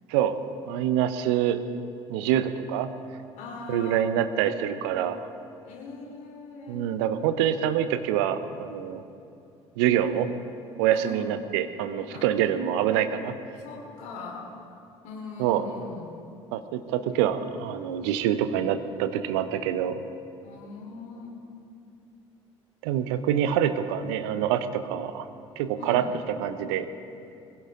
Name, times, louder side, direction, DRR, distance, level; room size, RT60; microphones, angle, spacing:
voice 1, 0.7-1.6 2.1-2.9 3.7-5.2 6.7-9.0 9.8-10.3 10.8-13.4 15.4-15.6 16.5-20.0 22.8-25.3 25.6-26.9, right 10 dB, 65° right, 10 dB, 1.0 m, -26 dB
voice 2, 3.4-4.1 5.6-6.9 10.9-11.4 12.1-12.3 13.6-14.5 15.0-16.1 20.4-21.5 25.8-26.1, left 3 dB, 55° left, 0 dB, 3.8 m, -41 dB
22.5 x 16.5 x 3.8 m, 2.6 s
figure-of-eight pair, 55°, 15 cm